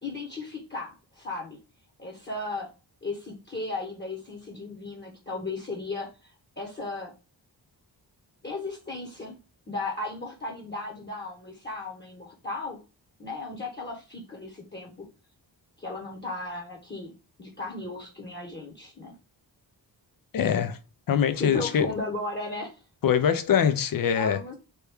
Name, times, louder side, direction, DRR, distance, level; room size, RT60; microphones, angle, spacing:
voice 1, 0.0-1.6 2.0-2.7 3.0-7.1 8.4-9.4 9.7-12.8 13.2-15.1 15.8-17.1 17.4-19.1 21.4-22.8 24.1-24.6, left 3 dB, 25° left, 1.0 m, -35 dB
voice 2, 20.3-20.8 21.1-21.9 23.0-24.4, left 8 dB, 50° left, 0.5 m, -23 dB
3.0 x 2.2 x 3.4 m
cardioid pair, 50°, 44 cm